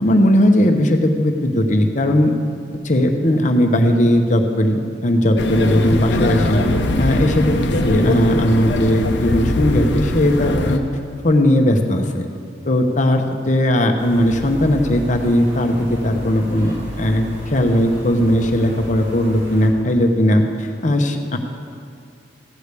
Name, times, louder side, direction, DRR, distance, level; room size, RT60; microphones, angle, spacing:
voice 1, 0.0-2.3 2.8-6.6 7.0-7.6 7.8-10.8 11.2-12.3 12.6-21.4, left 1 dB, 40° left, 4 dB, 0.9 m, -17 dB
sound 1, 5.4-10.8, left 1 dB, 65° left, 0.8 m, -20 dB
sound 2, 14.0-19.7, equal, 70° right, 2.4 m, -34 dB
14.5 x 5.0 x 8.2 m, 2.4 s
head